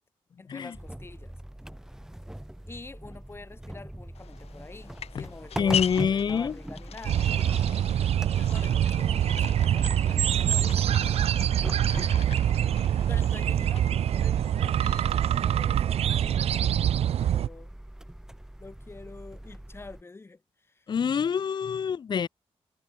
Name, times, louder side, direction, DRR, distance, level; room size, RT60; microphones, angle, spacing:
voice 1, 0.4-1.4 2.7-7.4 8.3-12.6 13.1-17.7 18.6-20.9, left 3 dB, 25° left, 3.0 m, -47 dB
sound 1, 0.7-20.0, right 1 dB, 5° right, 0.8 m, -42 dB
sound 2, 4.1-15.4, left 9 dB, 85° left, 2.3 m, -40 dB
voice 2, 5.6-6.5 20.9-22.3, left 7 dB, 45° left, 0.7 m, -26 dB
sound 3, 7.0-17.5, right 10 dB, 80° right, 0.5 m, -25 dB
wide cardioid pair, 155°, 10 cm